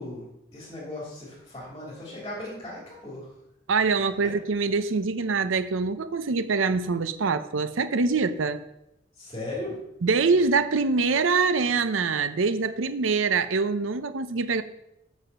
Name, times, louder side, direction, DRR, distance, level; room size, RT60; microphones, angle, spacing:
voice 1, 0.0-3.3 9.2-9.7, left 1 dB, 20° left, -5 dB, 3.0 m, -37 dB
voice 2, 3.7-8.6 10.0-14.6, right 4 dB, 80° right, 12 dB, 0.6 m, -24 dB
7.4 x 6.1 x 6.7 m, 0.86 s
head